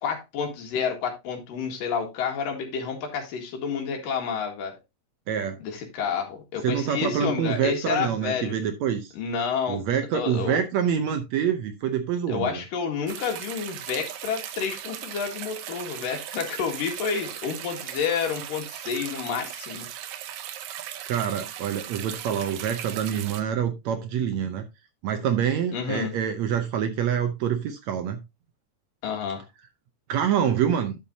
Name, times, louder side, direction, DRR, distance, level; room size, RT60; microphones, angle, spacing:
voice 1, 0.0-4.8 5.6-8.6 9.1-9.8 10.1-10.6 12.3-19.9 25.7-26.1 29.0-29.4, left 6 dB, 80° left, 3.6 m, -29 dB
voice 2, 5.3-5.6 6.6-9.1 9.7-12.6 21.1-24.6 25.0-28.2 30.1-31.0, right 8 dB, 70° right, 1.8 m, -26 dB
sound 1, 13.1-23.4, right 11 dB, 90° right, 2.6 m, -38 dB
10.5 x 6.8 x 2.8 m
omnidirectional pair, 3.8 m